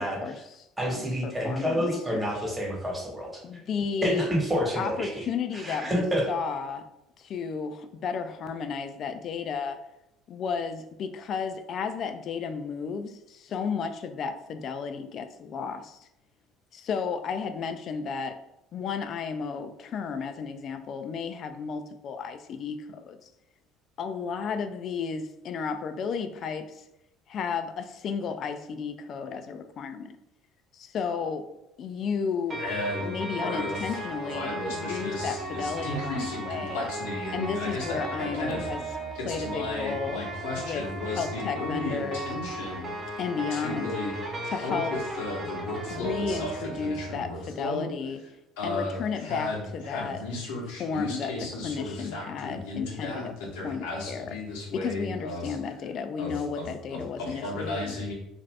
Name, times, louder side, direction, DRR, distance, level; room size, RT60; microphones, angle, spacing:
voice 1, 0.0-2.3 3.4-4.3 4.8-6.8 7.2-9.8 10.3-16.1 16.7-18.4 18.7-23.3 24.0-26.9 27.3-30.2 30.7-31.5 31.8-32.6 33.0-36.9 37.3-38.9 39.2-40.3 40.6-42.3 43.2-44.0 44.5-44.9 45.9-48.2 48.6-50.2 50.8-53.3 53.6-54.3 54.7-58.0, left 6 dB, 55° left, 8 dB, 0.3 m, -33 dB
voice 2, 0.8-3.3 4.0-5.2 5.5-6.3, equal, 15° right, -2 dB, 1.1 m, -28 dB
sound 1, 32.5-47.2, right 2 dB, 35° right, 0.8 m, -36 dB
voice 3, 32.6-38.7 39.1-42.9 43.5-46.5 46.8-47.9 48.6-55.5 56.2-58.1, left 2 dB, 85° left, -1 dB, 0.8 m, -35 dB
2.5 x 2.4 x 3.2 m, 0.84 s
supercardioid pair, 85°, 0 cm